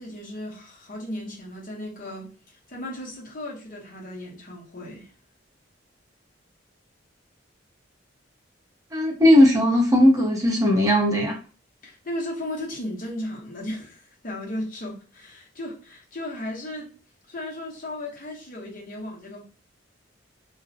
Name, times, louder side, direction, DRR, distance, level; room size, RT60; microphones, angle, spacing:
voice 1, 0.0-5.1 11.8-17.0 17.3-19.4, left 1 dB, 45° left, 0.9 m, -35 dB
voice 2, 8.9-11.4, left 1 dB, 20° right, 0.7 m, -18 dB
2.5 x 2.1 x 2.6 m
head